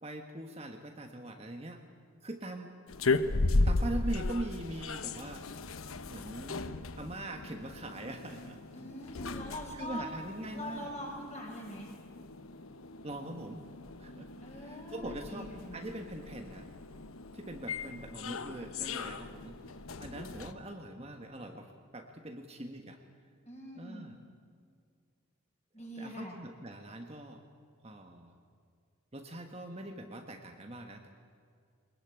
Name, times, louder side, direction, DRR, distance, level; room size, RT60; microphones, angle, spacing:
voice 1, 0.0-1.8 2.2-2.7 3.6-5.5 6.1-6.6 7.0-8.6 9.7-10.9 13.0-13.6 14.0-14.3 14.6-16.7 17.3-19.6 20.0-23.0 23.7-24.1 26.0-27.4 27.8-28.3 29.1-31.1, right 1 dB, 30° right, 4 dB, 1.5 m, -42 dB
sound 1, 2.9-20.5, left 2 dB, 90° left, 1.1 m, -36 dB
voice 2, 8.7-10.0 10.5-11.9 14.4-16.0 23.4-24.1 25.7-26.4, equal, 30° left, -1 dB, 6.7 m, -43 dB
23.0 x 21.0 x 9.0 m, 2.1 s
head